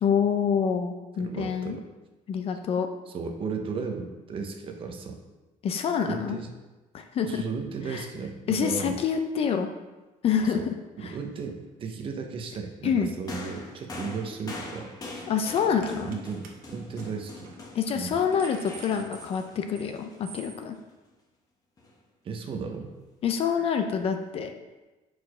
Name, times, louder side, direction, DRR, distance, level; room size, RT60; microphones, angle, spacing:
voice 1, 0.0-1.8 2.3-2.9 5.6-6.4 6.9-7.4 7.9-8.1 8.5-9.7 10.2-10.7 11.0-11.2 12.8-13.1 15.3-16.2 17.7-20.8 23.2-24.5, left 7 dB, 40° left, 6 dB, 0.5 m, -27 dB
voice 2, 1.2-1.8 3.1-5.2 6.1-6.5 7.2-9.0 10.5-10.6 11.0-15.2 15.9-17.5 17.9-18.1 22.2-23.0, right 5 dB, 35° right, 4 dB, 0.8 m, -35 dB
sound 1, 13.3-20.8 21.8-21.9, left 2 dB, 25° left, 1.0 m, -42 dB
sound 2, 14.1-14.4 14.6-14.9 15.6-16.2 16.4-16.5 16.9-17.1 17.5-17.6 18.0-19.9 20.2-20.6, right 6 dB, 70° right, 1.0 m, -47 dB
6.1 x 4.8 x 4.9 m, 1.1 s
cardioid pair, 175°, 15 cm